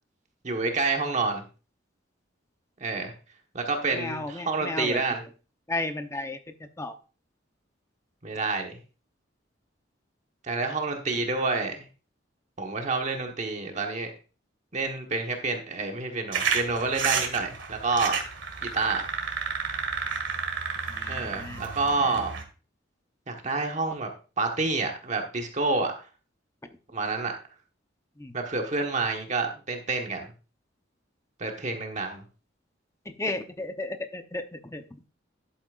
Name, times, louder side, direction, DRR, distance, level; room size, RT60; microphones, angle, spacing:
voice 1, 0.4-1.4 2.8-3.1 3.5-5.2 8.2-8.8 10.4-11.8 12.6-14.1 14.7-18.2 18.6-19.1 21.1-22.3 23.3-24.1 24.4-25.9 26.9-27.3 28.3-30.3 31.4-32.2, right 3 dB, 40° right, 3 dB, 1.3 m, -28 dB
voice 2, 3.9-5.0 5.7-6.4 6.8-6.9 20.9-21.6 22.0-22.2 28.2-28.3 33.1-34.8, left 2 dB, 15° left, 7 dB, 0.8 m, -34 dB
sound 1, 16.3-22.4, right 5 dB, 80° right, 1.8 m, -31 dB
11.5 x 8.5 x 2.5 m, 0.34 s
head